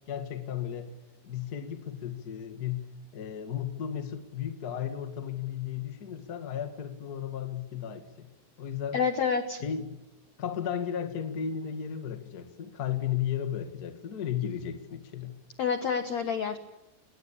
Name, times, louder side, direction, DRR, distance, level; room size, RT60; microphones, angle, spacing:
voice 1, 0.1-1.0 1.2-8.3 8.6-9.0 9.6-10.0 10.4-15.4, left 9 dB, 40° left, 1.4 m, -34 dB
voice 2, 8.9-9.6 15.6-16.6, left 6 dB, 65° left, 1.8 m, -28 dB
27.0 x 20.5 x 8.7 m
omnidirectional pair, 4.9 m